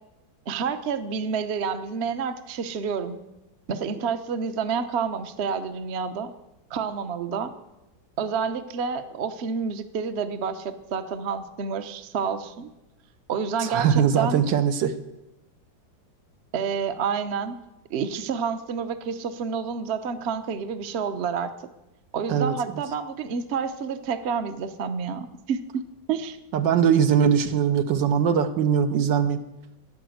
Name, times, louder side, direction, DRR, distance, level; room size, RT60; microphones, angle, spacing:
voice 1, 0.5-3.2 3.7-6.3 6.7-7.5 8.2-12.7 13.3-14.4 16.5-17.5 17.9-21.5 22.1-25.6 26.1-26.4, right 6 dB, 45° right, 9 dB, 0.9 m, -29 dB
voice 2, 13.6-14.9 22.3-22.5 26.5-29.4, right 7 dB, 80° right, 9 dB, 1.7 m, -21 dB
13.0 x 10.5 x 7.8 m, 0.95 s
omnidirectional pair, 2.0 m